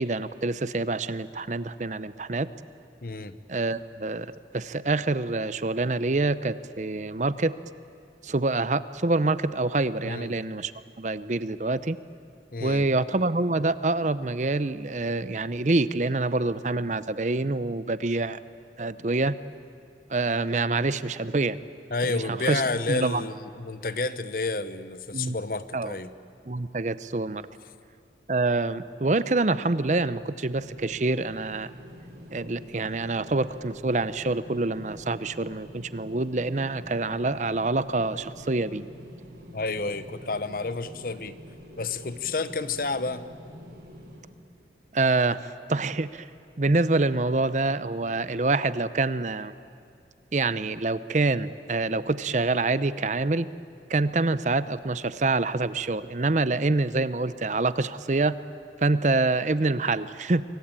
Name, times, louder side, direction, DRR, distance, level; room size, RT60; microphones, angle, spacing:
voice 1, 0.0-2.5 3.5-7.5 8.2-10.7 11.0-12.0 12.6-18.4 18.8-19.4 20.1-21.6 22.1-22.2 22.5-22.6 22.9-23.2 25.1-25.4 25.7-25.9 26.5-27.5 28.3-31.7 32.3-38.9 44.9-46.3 46.6-49.5 50.3-53.5 53.9-58.4 58.8-60.4, right 3 dB, 40° right, 15 dB, 0.7 m, -26 dB
voice 2, 3.0-3.3 10.0-10.3 12.5-12.8 21.9-26.1 39.5-41.4 41.8-43.3, left 3 dB, 55° left, 13 dB, 1.0 m, -30 dB
sound 1, 30.5-44.2, equal, 75° right, 5.8 m, -46 dB
27.0 x 23.5 x 9.0 m, 2.4 s
head